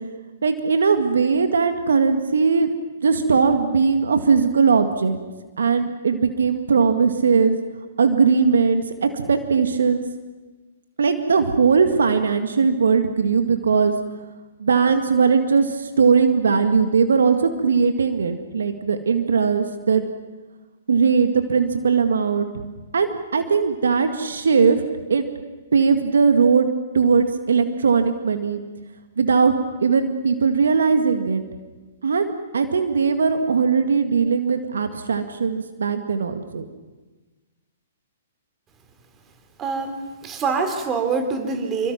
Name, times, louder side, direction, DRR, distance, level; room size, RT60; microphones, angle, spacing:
voice 1, 0.4-2.7 3.0-5.2 5.6-7.6 8.0-10.0 11.0-14.0 14.6-20.1 20.9-22.5 22.9-24.8 25.1-25.3 25.7-26.7 26.9-28.6 29.2-29.5 29.8-31.4 32.0-36.7, right 5 dB, 75° right, 7 dB, 2.0 m, -19 dB
voice 2, 39.6-41.9, right 4 dB, 20° right, 7 dB, 3.6 m, -25 dB
27.5 x 24.0 x 6.0 m, 1.2 s
hypercardioid pair, 125°, 0 cm